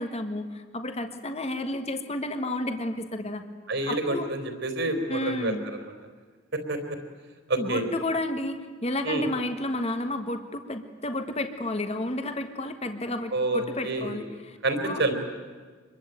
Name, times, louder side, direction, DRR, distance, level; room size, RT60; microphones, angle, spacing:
voice 1, 0.0-3.5 3.9-4.3 5.1-5.7 7.6-14.6 14.8-15.0, left 1 dB, 30° left, 7 dB, 1.6 m, -31 dB
voice 2, 3.7-5.5 6.5-6.8 7.5-7.8 9.0-9.3 13.3-14.2 14.6-15.1, right 2 dB, 60° right, 6 dB, 4.0 m, -28 dB
26.0 x 22.0 x 9.2 m, 1.5 s
head